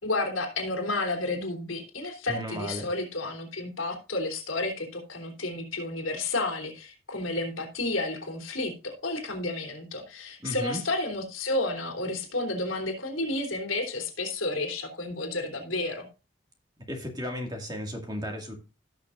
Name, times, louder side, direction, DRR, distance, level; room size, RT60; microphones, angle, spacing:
voice 1, 0.0-16.1, left 2 dB, 85° left, 3 dB, 3.3 m, -31 dB
voice 2, 2.3-2.9 10.4-10.8 16.9-18.6, equal, 20° right, 2 dB, 2.1 m, -34 dB
17.0 x 6.3 x 2.6 m, 0.32 s
head